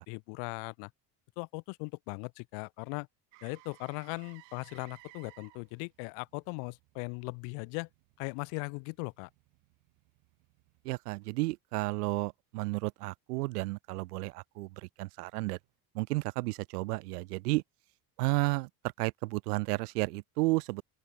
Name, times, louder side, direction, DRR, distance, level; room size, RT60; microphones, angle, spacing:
voice 1, 0.1-0.9 1.4-3.1 3.4-7.9 8.2-9.3, left 40 dB or more, 70° left, 0.9 m, -39 dB
Motor vehicle (road), 3.3-11.2 15.6-15.7, right 29 dB, 70° right, 2.5 m, -61 dB
voice 2, 10.8-14.7 15.0-15.6 15.9-17.6 18.2-18.7 19.0-20.8, right 22 dB, 90° right, 0.5 m, -32 dB
open air
hypercardioid pair, 70°, 45 cm